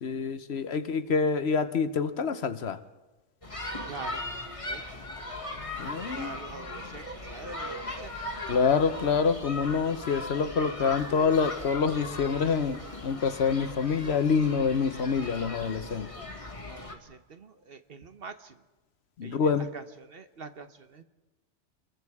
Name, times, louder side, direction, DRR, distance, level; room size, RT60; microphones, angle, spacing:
voice 1, 0.0-2.8 5.8-6.3 8.5-16.1 19.2-19.7, left 5 dB, 60° left, 11 dB, 1.1 m, -26 dB
sound 1, 3.4-16.9, left 2 dB, 25° left, 1.8 m, -38 dB
voice 2, 3.9-5.1 5.8-8.3 10.6-10.8 16.6-18.6 19.2-21.0, right 4 dB, 55° right, 9 dB, 1.2 m, -45 dB
28.0 x 21.5 x 4.8 m, 1.2 s
omnidirectional pair, 1.2 m